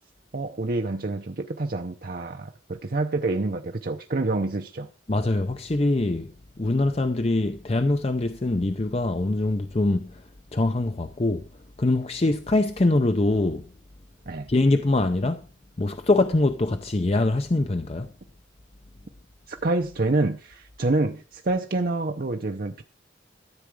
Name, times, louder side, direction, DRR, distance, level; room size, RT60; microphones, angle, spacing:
voice 1, 0.3-4.9 14.3-14.5 19.5-22.8, right 2 dB, 50° right, 0.7 m, -27 dB
voice 2, 5.1-6.3 6.6-10.2 10.5-11.5 11.8-13.7 14.5-15.4 15.8-18.1, left 2 dB, 30° left, 0.6 m, -23 dB
14.0 x 8.0 x 4.8 m
head